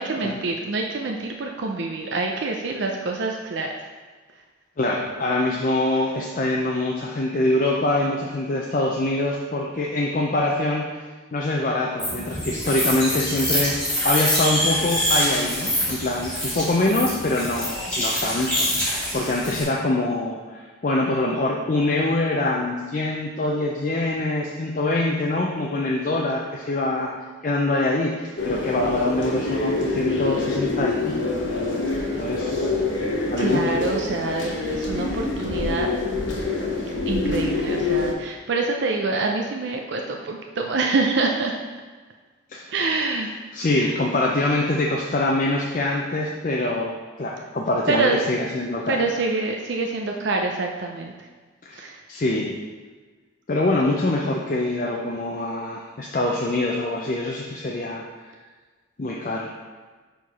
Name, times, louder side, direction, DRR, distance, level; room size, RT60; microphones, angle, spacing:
voice 1, 0.0-3.7 31.9-32.2 33.4-35.9 37.1-41.6 42.7-43.3 43.7-43.9 47.9-48.3 48.9-51.3 51.7-52.0, right 3 dB, 60° right, 2 dB, 0.5 m, -26 dB
voice 2, 4.8-10.8 11.3-27.1 27.4-31.1 32.2-32.7 33.3-33.6 42.5-42.7 43.5-49.0 51.6-51.8 52.1-52.6 53.5-58.0 59.0-59.5, left 2 dB, 40° left, -2 dB, 0.5 m, -24 dB
sound 1, 12.0-19.6, equal, 5° left, 1.9 m, -25 dB
sound 2, 28.4-38.1, left 3 dB, 65° left, 0.9 m, -26 dB
4.7 x 4.5 x 5.3 m, 1.4 s
head